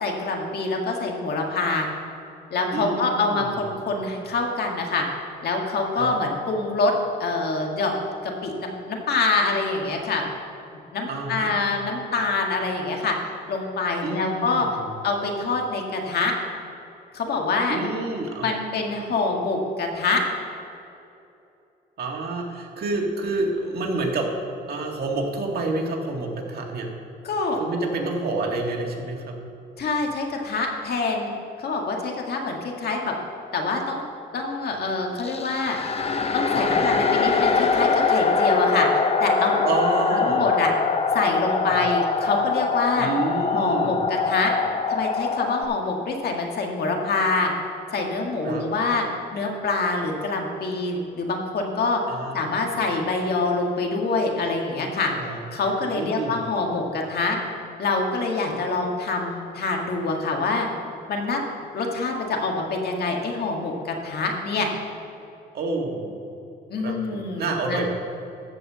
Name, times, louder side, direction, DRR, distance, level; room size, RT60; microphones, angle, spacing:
voice 1, 0.0-1.9 2.5-5.1 5.4-6.9 7.2-8.0 8.2-10.2 10.9-13.2 13.5-14.7 15.0-16.3 17.1-17.8 18.4-20.2 27.2-27.6 29.8-31.3 31.6-33.2 33.5-34.0 34.3-35.8 36.3-38.9 39.2-39.7 40.1-40.7 41.1-43.1 43.5-44.5 44.9-47.5 47.9-49.1 49.3-52.0 52.3-55.1 55.5-57.4 57.8-60.7 61.1-61.4 61.7-64.7 66.7-67.9, left 3 dB, 60° left, 1 dB, 1.9 m, -25 dB
voice 2, 2.7-3.6 6.0-6.2 11.1-11.5 14.0-14.9 17.7-18.5 22.0-24.3 24.7-26.9 27.6-29.4 36.5-36.9 39.6-40.5 41.7-41.8 43.0-44.1 48.4-48.6 52.1-52.4 55.2-55.4 55.9-56.4 65.5-66.2 66.8-67.9, right 3 dB, 60° right, 0 dB, 2.0 m, -28 dB
sound 1, 35.2-45.7, left 5 dB, 35° left, 0.7 m, -23 dB
13.5 x 5.0 x 7.4 m, 2.8 s
cardioid pair, 105°, 18 cm